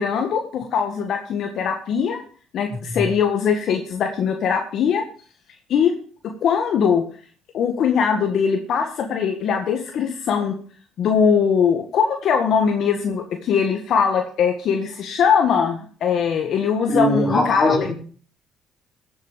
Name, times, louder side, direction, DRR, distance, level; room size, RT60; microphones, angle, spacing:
voice 1, 0.0-2.2 2.5-5.0 5.7-5.9 6.2-7.0 7.5-10.5 11.0-17.9, left 7 dB, 65° left, 1.7 m, -21 dB
voice 2, 2.7-3.1 16.9-17.9, left 1 dB, 30° left, 4.6 m, -21 dB
15.0 x 8.2 x 5.2 m
supercardioid pair, 85°, 0 cm